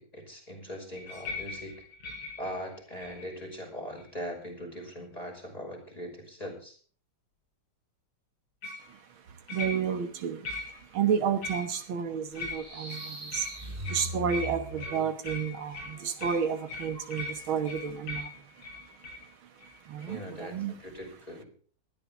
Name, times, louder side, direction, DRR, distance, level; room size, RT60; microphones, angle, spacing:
voice 1, 0.0-1.8 2.4-6.8 20.1-21.5, equal, 15° left, 1 dB, 5.8 m, -40 dB
sound 1, 1.0-3.4 4.0-4.4 8.6-8.9 9.5-10.1 10.4-10.9 11.4-12.0 12.3-19.2 19.6-19.7 20.0-20.2, left 2 dB, 85° left, 7.7 m, -40 dB
voice 2, 8.8-20.7, right 7 dB, 75° right, 8 dB, 2.1 m, -32 dB
sound 2, 12.4-15.2, equal, 25° right, 2.3 m, -40 dB
19.5 x 13.0 x 3.7 m, 0.42 s
omnidirectional pair, 2.3 m